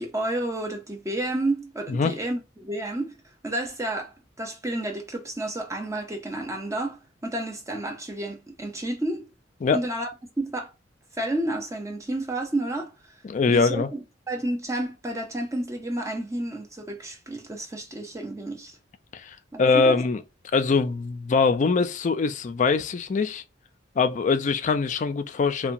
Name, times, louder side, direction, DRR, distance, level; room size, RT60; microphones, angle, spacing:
voice 1, 0.0-3.1 3.4-9.3 9.7-10.1 10.4-10.7 11.2-12.9 13.5-14.0 14.3-18.8 19.5-20.0, right 1 dB, 15° right, 0.7 m, -30 dB
voice 2, 13.3-13.9 19.1-20.2 20.5-23.4 24.0-25.7, left 4 dB, 40° left, 0.4 m, -23 dB
2.8 x 2.2 x 2.5 m
head